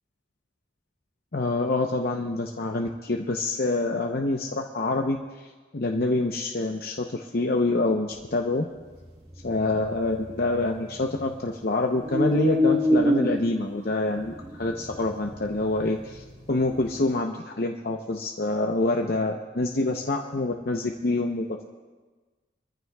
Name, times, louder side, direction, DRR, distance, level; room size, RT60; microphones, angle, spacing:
voice 1, 1.3-8.6 9.4-21.6, left 2 dB, 55° left, 1 dB, 0.7 m, -26 dB
sound 1, 8.9-11.5 11.9-17.1, left 1 dB, 30° right, 2.0 m, -27 dB
23.5 x 14.0 x 2.3 m, 1.3 s
head